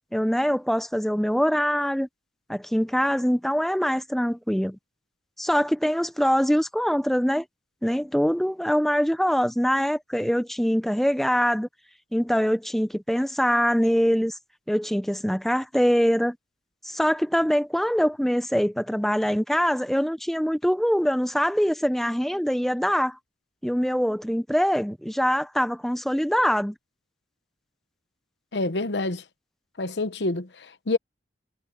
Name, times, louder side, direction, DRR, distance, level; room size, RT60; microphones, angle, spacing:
voice 1, 0.1-2.1 2.5-4.8 5.4-7.4 7.8-11.7 12.1-14.4 14.7-16.4 16.8-23.2 23.6-26.8, equal, ahead, 0.6 m, -23 dB
voice 2, 28.5-29.2 29.8-31.0, left 2 dB, 75° left, 1.0 m, -27 dB
head